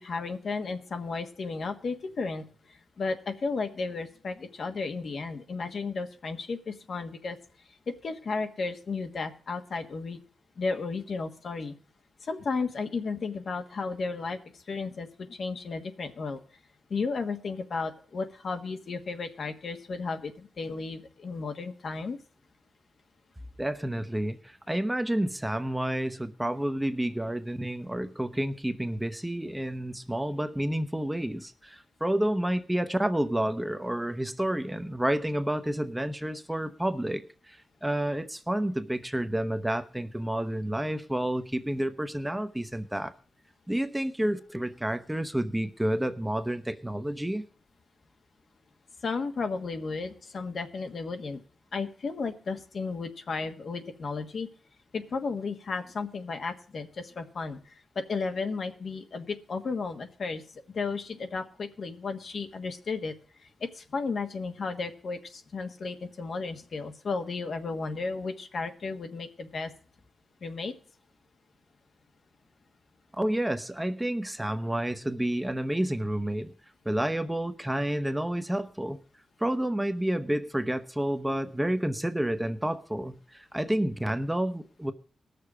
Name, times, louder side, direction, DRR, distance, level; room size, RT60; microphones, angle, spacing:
voice 1, 0.0-7.4 7.9-10.2 10.6-11.7 12.2-16.4 16.9-22.2 49.0-51.4 51.7-54.5 54.9-60.4 60.7-63.1 63.6-69.7 70.4-70.7, left 4 dB, 65° left, 7 dB, 1.4 m, -34 dB
voice 2, 23.6-43.1 43.7-47.4 73.2-76.5 76.8-79.0 79.4-84.9, right 1 dB, 10° right, 10 dB, 0.9 m, -30 dB
18.5 x 6.8 x 4.9 m, 0.41 s
cardioid pair, 85°, 0 cm